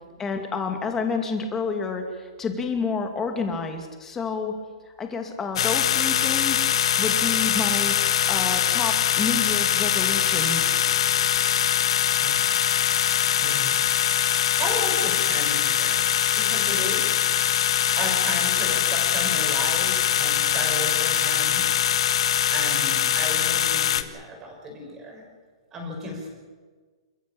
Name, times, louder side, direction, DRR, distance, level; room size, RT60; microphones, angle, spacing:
voice 1, 0.2-4.5 4.9-6.6 7.0-10.8, left 4 dB, 10° left, 4 dB, 2.5 m, -29 dB
sound 1, 5.6-24.0, left 10 dB, 65° left, 1.6 m, -22 dB
voice 2, 13.4-13.9 14.6-16.0 16.3-17.2 18.0-21.7 22.5-25.2 25.7-26.3, equal, 15° right, 1 dB, 6.3 m, -34 dB
28.5 x 15.0 x 8.9 m, 1.5 s
hypercardioid pair, 165°, 3 cm